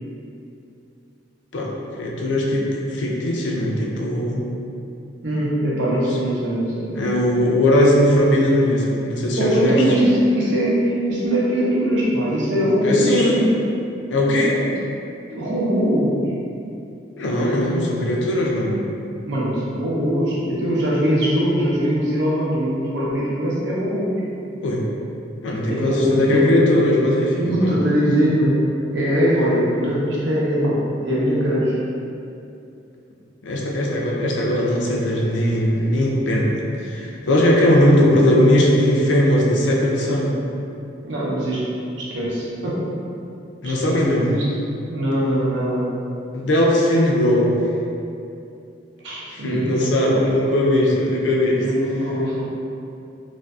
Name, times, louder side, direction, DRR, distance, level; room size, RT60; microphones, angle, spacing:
voice 1, 2.0-4.5 6.9-9.8 12.8-13.4 14.1-14.5 17.2-18.8 24.6-24.9 25.4-27.8 33.4-40.3 43.6-44.3 46.3-47.6 49.3-51.6, left 1 dB, 90° left, -2 dB, 0.4 m, -19 dB
voice 2, 5.2-6.9 9.4-13.6 14.6-14.7 15.3-16.2 19.2-24.1 25.7-26.4 27.4-28.5 28.9-31.8 41.0-41.6 42.0-42.8 43.6-44.4 44.9-45.9 49.0-50.3 51.6-52.4, equal, 85° right, -6 dB, 0.6 m, -21 dB
2.5 x 2.4 x 2.2 m, 2.6 s
head